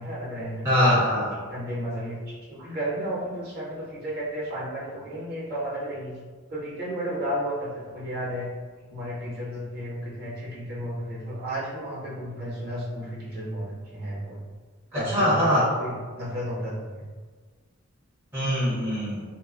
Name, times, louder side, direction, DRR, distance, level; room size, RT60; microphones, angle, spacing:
voice 1, 0.0-1.0 1.4-6.2 6.5-8.5 8.9-14.4 14.9-17.1, equal, 45° right, -6 dB, 0.7 m, -33 dB
voice 2, 0.6-1.3 14.9-15.7 18.3-19.2, equal, 10° right, -10 dB, 0.5 m, -22 dB
2.7 x 2.1 x 2.3 m, 1.4 s
head